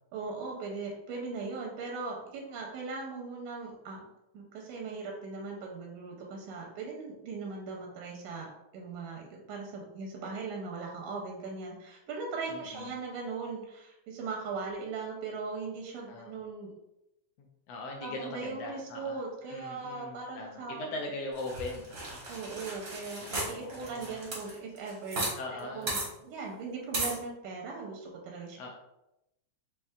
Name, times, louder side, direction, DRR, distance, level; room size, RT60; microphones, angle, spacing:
voice 1, 0.1-4.1 4.3-8.5 8.7-16.7 18.0-20.9 22.3-25.3 25.6-28.6, right 4 dB, 85° right, 0 dB, 2.2 m, -39 dB
voice 2, 12.5-13.0 16.1-16.3 17.4-19.2 19.5-22.2 23.2-24.2 25.4-26.0 28.6-28.7, left 2 dB, 80° left, 0 dB, 1.4 m, -41 dB
sound 1, 21.4-25.3 25.6-25.7 25.9-26.1 26.9-27.2, right 2 dB, 55° right, 1.0 m, -35 dB
5.4 x 3.0 x 2.3 m, 0.88 s
omnidirectional pair, 3.4 m